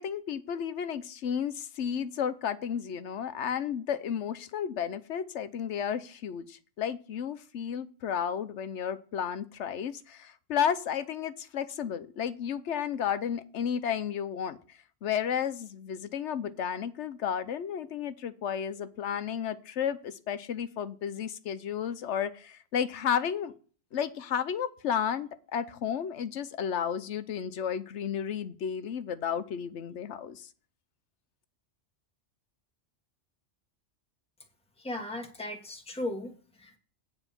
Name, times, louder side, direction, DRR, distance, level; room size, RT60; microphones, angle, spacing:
voice 1, 0.0-14.6 15.0-23.5 23.9-30.5, left 8 dB, 70° left, 13 dB, 1.0 m, -32 dB
voice 2, 34.8-36.8, left 1 dB, 5° left, 2 dB, 1.5 m, -37 dB
9.1 x 4.4 x 7.3 m, 0.40 s
omnidirectional pair, 1.2 m